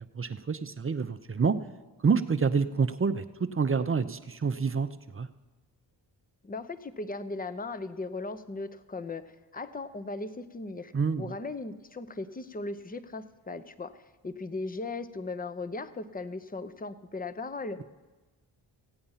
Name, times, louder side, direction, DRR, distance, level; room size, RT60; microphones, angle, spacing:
voice 1, 0.1-1.6 2.0-3.2 3.5-4.9 5.1-5.3 10.9-11.3, right 5 dB, 25° right, 10 dB, 0.7 m, -27 dB
voice 2, 6.4-10.9 11.2-17.8, left 3 dB, 20° left, 12 dB, 0.8 m, -37 dB
16.0 x 8.6 x 5.6 m, 1.3 s
supercardioid pair, 50°, 47 cm